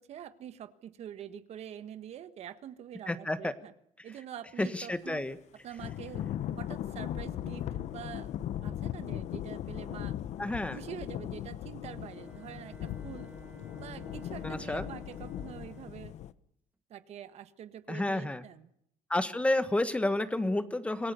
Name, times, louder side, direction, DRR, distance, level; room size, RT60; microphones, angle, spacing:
voice 1, 0.0-3.7 4.0-5.2 5.6-6.3 6.6-8.3 8.6-10.2 10.7-13.3 13.8-16.1 16.9-18.7, right 10 dB, 55° right, 12 dB, 1.5 m, -45 dB
voice 2, 3.1-3.5 4.6-5.4 10.4-10.8 14.4-14.9 17.9-18.4 19.1-21.1, left 1 dB, 10° left, 11 dB, 1.4 m, -30 dB
Thunder / Rain, 5.8-16.3, left 11 dB, 65° left, 1.1 m, -38 dB
Bowed string instrument, 12.0-16.2, right 3 dB, 10° right, 1.5 m, -53 dB
26.5 x 19.0 x 7.0 m, 0.72 s
cardioid pair, 135°, 13 cm